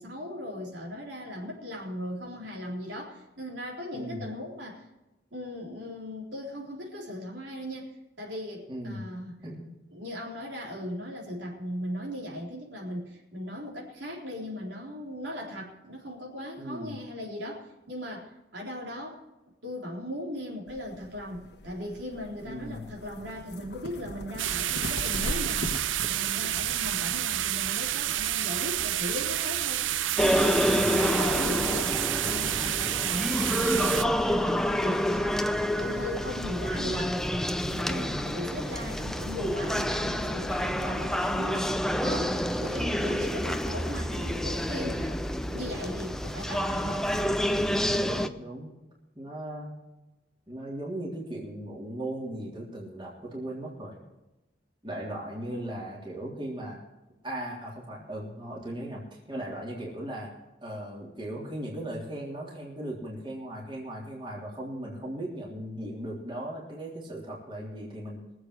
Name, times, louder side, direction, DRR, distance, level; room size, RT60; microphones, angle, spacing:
voice 1, 0.0-4.9 5.3-9.4 9.9-19.2 19.6-25.7 26.0-29.9 30.4-37.2 37.6-47.1, left 1 dB, 70° right, -2 dB, 3.8 m, -38 dB
voice 2, 8.7-9.0 9.4-9.6 16.6-17.0 22.4-22.9 30.5-30.9 37.9-38.2 44.7-45.0 47.8-48.7 49.1-49.7 50.5-53.9 54.8-56.8 57.2-60.3 60.6-68.2, right 1 dB, 25° right, -3 dB, 3.4 m, -37 dB
sound 1, 20.7-30.1, left 2 dB, 60° left, 1.2 m, -41 dB
sound 2, 24.4-34.0, right 13 dB, 85° right, 0.5 m, -29 dB
sound 3, 30.2-48.3, equal, 5° left, 0.5 m, -28 dB
23.0 x 8.0 x 4.8 m, 1.0 s
head